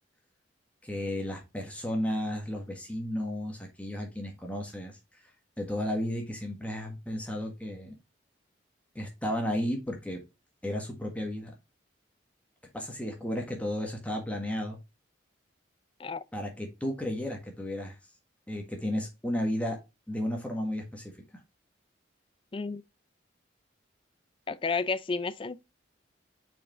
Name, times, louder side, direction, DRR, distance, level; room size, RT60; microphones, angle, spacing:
voice 1, 0.8-5.2 5.6-7.9 8.9-10.2 10.6-11.5 12.7-14.8 16.3-18.0 18.5-19.8 20.1-21.1, left 1 dB, 5° left, 1.4 m, -33 dB
voice 2, 24.5-25.6, left 4 dB, 25° left, 0.4 m, -31 dB
5.9 x 4.9 x 3.6 m
head